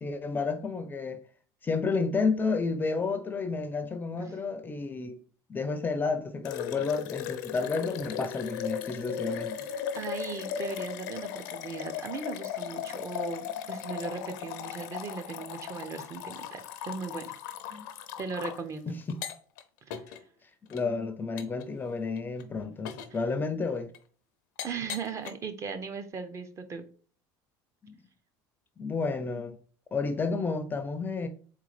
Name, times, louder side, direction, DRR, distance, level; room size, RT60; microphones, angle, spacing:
voice 1, 0.0-1.2 1.6-5.2 5.5-9.7 17.7-17.8 18.9-19.0 20.7-23.9 27.8-28.0 28.8-29.6 29.9-31.3, left 4 dB, 20° left, 0.4 m, -31 dB
sound 1, 6.4-18.6 19.1-19.6 19.9-20.2 20.7-20.8 21.4-21.6 22.2-22.4 22.9-23.2 23.9-24.0 24.6-25.3, left 9 dB, 90° left, 0.5 m, -37 dB
voice 2, 9.9-17.3 18.2-18.9 19.9-20.0 24.6-26.8, right 5 dB, 30° right, 0.6 m, -38 dB
3.7 x 3.6 x 3.2 m
supercardioid pair, 120°, 10 cm